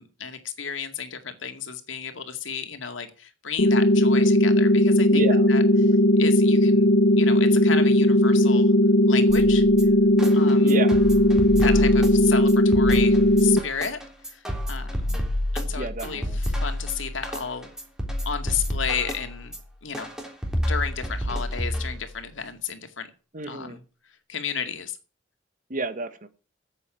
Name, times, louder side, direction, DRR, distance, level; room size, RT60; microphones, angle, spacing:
voice 1, 0.0-5.2 5.5-5.6 6.2-6.9 7.2-8.7 9.1-9.7 10.3-10.7 11.6-14.0 14.3-15.2 15.5-17.7 18.3-19.5 19.8-20.1 20.7-23.1 23.5-23.8 24.3-25.0, left 7 dB, 85° left, 7 dB, 2.1 m, -32 dB
sound 1, 3.6-13.6, left 1 dB, 65° left, 0.9 m, -18 dB
voice 2, 5.1-6.0 10.6-11.0 15.7-16.4 23.3-23.8 25.7-26.3, right 3 dB, 45° right, 11 dB, 1.4 m, -31 dB
sound 2, 9.3-22.3, left 1 dB, 5° right, 3.4 m, -30 dB
9.8 x 8.2 x 9.0 m, 0.37 s
head